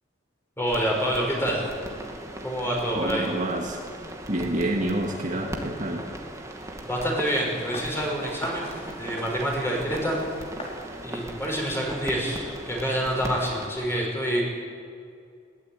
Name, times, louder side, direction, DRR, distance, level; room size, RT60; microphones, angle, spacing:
voice 1, 0.6-1.7 2.4-3.2 6.8-8.7 9.0-10.2 11.0-14.4, equal, 10° left, -1 dB, 6.2 m, -27 dB
sound 1, 0.7-13.7, right 1 dB, 15° right, 2.2 m, -39 dB
voice 2, 2.9-3.8 4.3-6.1, right 1 dB, 40° right, 0 dB, 2.1 m, -28 dB
sound 2, 7.0-12.0, left 1 dB, 30° left, 4.3 m, -42 dB
21.5 x 18.0 x 9.1 m, 2.3 s
head